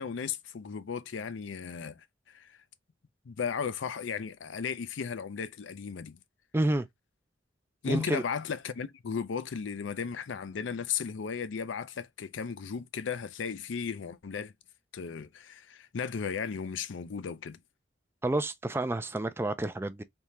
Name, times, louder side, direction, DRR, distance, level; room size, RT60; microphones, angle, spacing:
voice 1, 0.0-2.6 3.3-6.2 7.8-14.5 14.9-17.6, left 6 dB, 85° left, 0.5 m, -35 dB
voice 2, 6.5-6.9 7.8-8.2 18.2-20.0, right 1 dB, 15° right, 0.3 m, -29 dB
3.6 x 2.7 x 3.1 m
head